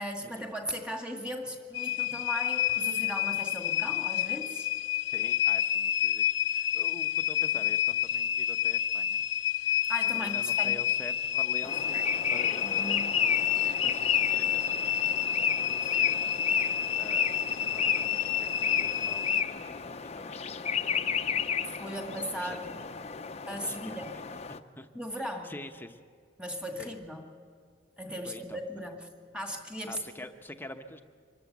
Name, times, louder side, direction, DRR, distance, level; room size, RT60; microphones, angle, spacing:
voice 1, 0.0-4.7 9.8-10.8 12.6-13.1 15.8-16.0 21.8-22.8 23.5-24.1 24.9-25.5 26.4-27.3 28.0-29.1 29.3-30.0, equal, 5° right, 2 dB, 2.1 m, -37 dB
sound 1, 1.7-19.4, left 10 dB, 70° left, 0.7 m, -29 dB
voice 2, 5.1-9.3 9.6-16.6 16.9-19.6 20.0-21.8 22.4-22.6 23.6-24.9 25.4-26.0 26.8-26.9 28.2-28.6 29.9-31.0, left 1 dB, 10° left, 7 dB, 0.9 m, -47 dB
sound 2, 11.6-24.6, left 7 dB, 35° left, 0.6 m, -32 dB
25.0 x 13.5 x 8.0 m, 2.1 s
head